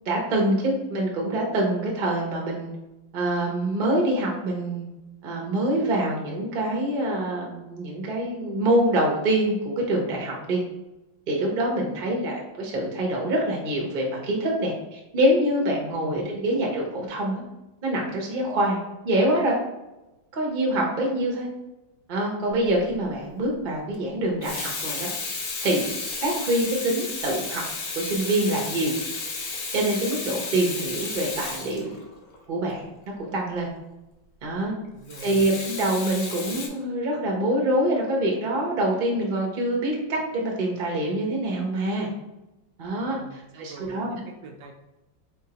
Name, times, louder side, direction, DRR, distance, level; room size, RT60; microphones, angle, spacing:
voice 1, 0.0-2.7 3.1-4.8 5.2-10.6 11.3-17.4 17.8-18.8 19.0-19.6 20.3-21.5 22.1-25.1 25.6-25.9 26.2-27.6 27.9-29.0 29.7-31.9 32.5-32.8 33.2-33.7 34.4-34.8 35.2-42.1 42.8-44.2, right 1 dB, 40° right, -1 dB, 0.7 m, -25 dB
voice 2, 11.7-12.3 16.0-16.4 34.9-35.3 43.0-44.7, right 3 dB, 75° right, 3 dB, 1.3 m, -46 dB
Water tap faucet / Sink (filling or washing), 22.6-22.9 24.2-32.4 35.1-36.7, left 4 dB, 85° left, 0.5 m, -33 dB
4.1 x 3.6 x 2.8 m, 0.98 s
omnidirectional pair, 2.1 m